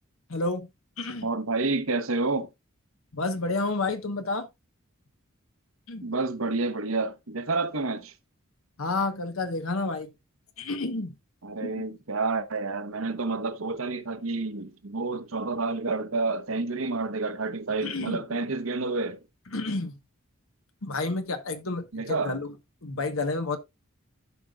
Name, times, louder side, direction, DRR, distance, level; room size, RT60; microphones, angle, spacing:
voice 1, 0.3-0.7 1.0-1.3 3.1-4.5 5.9-6.1 8.8-10.1 10.6-11.1 11.6-11.7 17.8-18.2 19.5-19.9 20.8-22.5 22.8-23.6, left 3 dB, 70° left, 1.1 m, -30 dB
voice 2, 1.2-2.5 6.0-8.1 11.4-19.2 21.9-22.4, right 3 dB, 70° right, 1.0 m, -29 dB
15.5 x 5.2 x 2.3 m
head